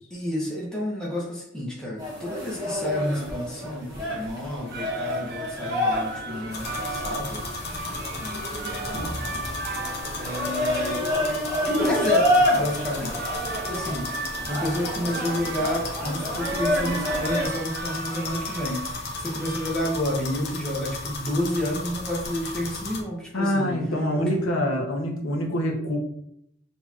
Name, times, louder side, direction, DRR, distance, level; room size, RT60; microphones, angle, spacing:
voice 1, 0.1-7.4 7.9-9.3 10.1-11.1 11.7-13.3 13.7-23.8 24.1-24.4, left 1 dB, 5° left, -6 dB, 0.8 m, -30 dB
sound 1, 2.0-17.5, equal, 20° right, 1.1 m, -29 dB
sound 2, 4.5-20.4, right 3 dB, 45° right, 0.4 m, -37 dB
sound 3, 6.5-23.0, left 3 dB, 50° left, 0.7 m, -35 dB
voice 2, 23.3-26.0, equal, 85° left, 2 dB, 0.8 m, -25 dB
6.1 x 2.9 x 2.4 m, 0.73 s
head